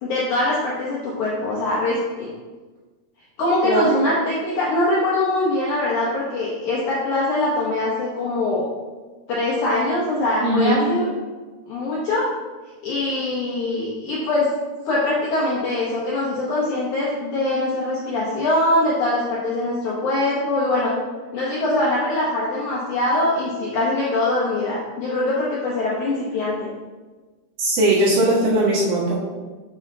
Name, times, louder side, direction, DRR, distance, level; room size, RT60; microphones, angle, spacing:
voice 1, 0.0-2.3 3.4-8.7 9.3-11.1 11.7-12.3 12.8-14.5 14.9-20.9 21.3-26.7, left 2 dB, 70° left, -6 dB, 1.9 m, -22 dB
voice 2, 10.4-10.8 27.6-29.1, right 1 dB, 70° right, -11 dB, 3.4 m, -19 dB
7.1 x 5.3 x 3.8 m, 1.3 s
omnidirectional pair, 4.6 m